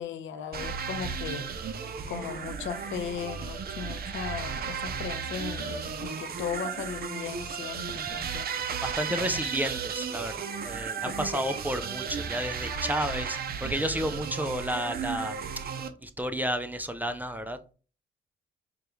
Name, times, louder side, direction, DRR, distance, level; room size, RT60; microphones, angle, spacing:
voice 1, 0.0-1.7 2.1-8.5 9.1-9.4 11.1-11.4, left 8 dB, 75° left, 0.6 m, -37 dB
sound 1, 0.5-15.9, right 6 dB, 50° right, 0.6 m, -34 dB
voice 2, 8.8-15.4 16.0-17.6, equal, 10° right, 0.4 m, -31 dB
4.9 x 2.4 x 3.0 m
cardioid pair, 90°, 20 cm